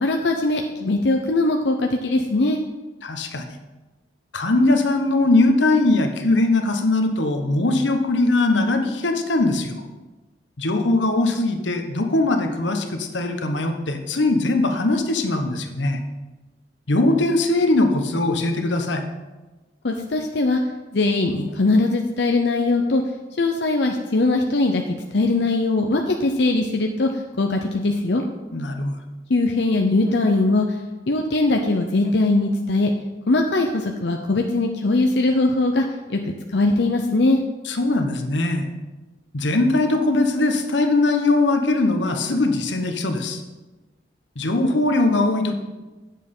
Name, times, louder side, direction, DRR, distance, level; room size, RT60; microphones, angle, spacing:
voice 1, 0.0-2.6 19.8-20.6 20.9-23.0 23.4-24.9 25.1-27.1 27.4-28.2 29.3-30.8 31.1-32.9 33.3-37.4, left 2 dB, 70° left, 3 dB, 0.7 m, -20 dB
voice 2, 3.0-3.4 4.3-9.8 10.6-16.0 16.9-19.0 28.5-29.0 37.6-38.7 39.3-43.4 44.4-45.5, left 2 dB, 85° left, 6 dB, 1.1 m, -20 dB
8.8 x 7.4 x 5.5 m, 1.2 s
head